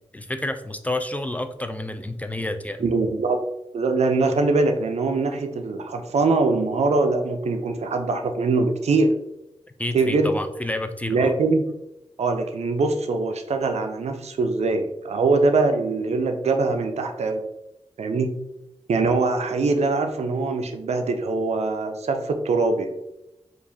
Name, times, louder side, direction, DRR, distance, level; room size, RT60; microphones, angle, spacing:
voice 1, 0.1-2.8 9.8-11.3, left 1 dB, 15° left, 8 dB, 0.3 m, -29 dB
voice 2, 2.8-3.4 3.7-9.2 9.9-10.3 11.1-11.7 12.2-17.4 18.0-18.3 18.9-22.9, right 3 dB, 80° right, 5 dB, 0.4 m, -22 dB
4.6 x 2.5 x 2.6 m, 0.88 s
wide cardioid pair, 65°, 11 cm